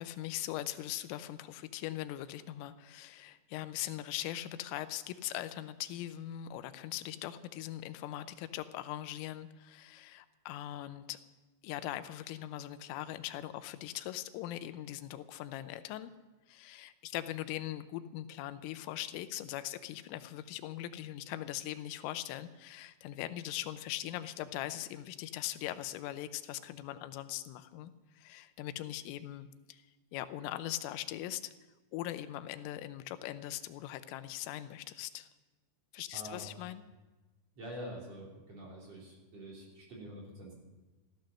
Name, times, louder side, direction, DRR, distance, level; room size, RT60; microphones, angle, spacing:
voice 1, 0.0-11.2 11.6-16.1 16.5-29.8 30.1-31.5 31.9-35.3 35.9-36.8, left 13 dB, 90° left, 11 dB, 3.3 m, -41 dB
voice 2, 36.1-36.5 37.6-40.5, equal, 35° right, -3 dB, 3.8 m, -46 dB
15.5 x 13.0 x 6.4 m, 1.2 s
omnidirectional pair, 5.8 m